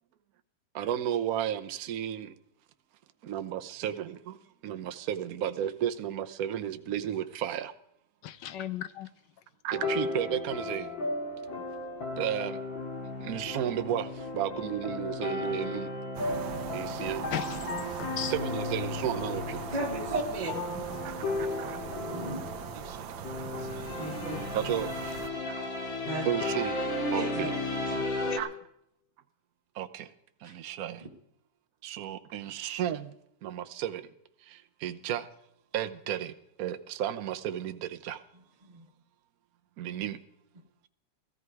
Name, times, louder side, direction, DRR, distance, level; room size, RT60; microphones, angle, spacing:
voice 1, 0.7-2.3 3.2-7.7 9.6-10.9 12.2-12.6 13.2-15.9 16.7-17.3 18.2-19.6 21.0-21.8 22.7-23.1 23.4-23.9 24.5-25.1 25.5-25.7 26.2-26.8 27.1-27.5 28.4-28.5 29.7-30.1 30.4-31.0 31.8-33.1 33.4-34.1 34.4-35.3 35.7-36.3 36.6-38.2 39.8-40.2, right 10 dB, 60° right, 1.1 m, -33 dB
voice 2, 8.2-9.1 17.3-18.3 20.7-21.1 28.3-28.4, left 12 dB, 70° left, 1.3 m, -37 dB
sound 1, 9.7-28.4, left 2 dB, 90° left, 2.7 m, -34 dB
sound 2, 16.1-25.3, right 9 dB, 90° right, 1.6 m, -40 dB
voice 3, 19.7-20.5 22.0-22.4 24.0-24.4 26.0-26.2 27.1-27.5 27.9-28.0 30.4-30.5 38.7-38.8, right 2 dB, 25° right, 1.5 m, -34 dB
15.5 x 14.5 x 4.7 m
omnidirectional pair, 2.1 m